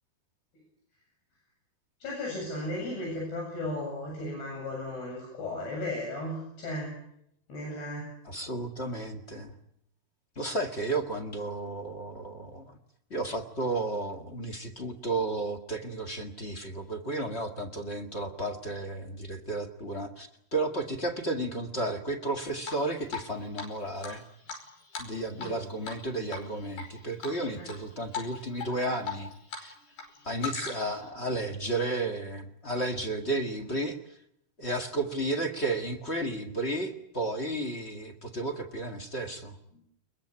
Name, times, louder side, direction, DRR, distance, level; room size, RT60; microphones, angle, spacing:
voice 1, 2.0-7.0 7.5-8.1 25.4-25.5 27.5-27.7 39.7-39.8, left 1 dB, 90° left, -2 dB, 10.0 m, -35 dB
voice 2, 8.2-9.5 10.3-12.7 13.1-24.2 25.0-29.3 29.6-29.7 30.2-34.0 34.6-39.5, right 2 dB, 35° left, 5 dB, 1.0 m, -33 dB
Drip, 22.6-23.3 23.6-23.7 24.0-25.6 25.8-26.0 26.3-26.9 27.2-27.8 28.1-28.3 28.6-29.6 29.9-31.0, left 5 dB, 65° left, 7.1 m, -38 dB
23.5 x 22.0 x 8.8 m, 0.75 s
omnidirectional pair, 4.5 m